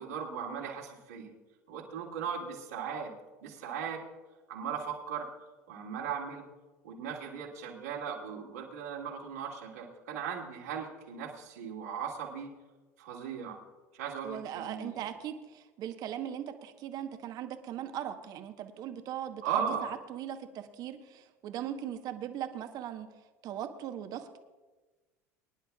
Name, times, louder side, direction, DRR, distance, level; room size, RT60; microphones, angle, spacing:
voice 1, 0.0-1.3 1.7-3.1 3.4-4.0 4.5-5.3 5.7-6.4 6.8-12.5 13.0-13.6 13.9-15.1 19.4-19.9, right 7 dB, 75° right, -2 dB, 2.5 m, -37 dB
voice 2, 14.2-19.6 20.1-23.1 23.4-24.4, right 10 dB, 50° right, 8 dB, 1.1 m, -39 dB
23.5 x 10.5 x 2.4 m, 1.2 s
hypercardioid pair, 70°, 8 cm